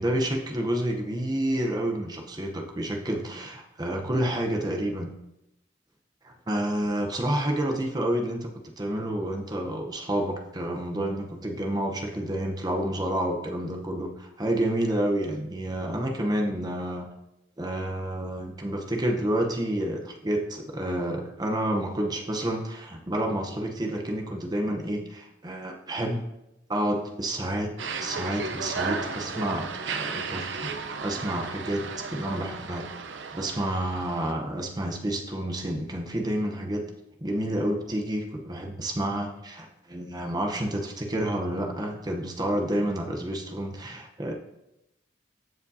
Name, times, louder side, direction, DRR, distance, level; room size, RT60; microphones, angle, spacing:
voice 1, 0.0-5.1 6.2-8.5 8.8-17.1 17.6-26.2 26.7-27.7 28.0-32.9 33.3-36.9 37.2-44.3, right 1 dB, 20° right, 2 dB, 0.8 m, -29 dB
sound 1, 27.8-34.3, right 4 dB, 80° right, 0.6 m, -34 dB
15.0 x 5.1 x 2.7 m, 0.90 s
head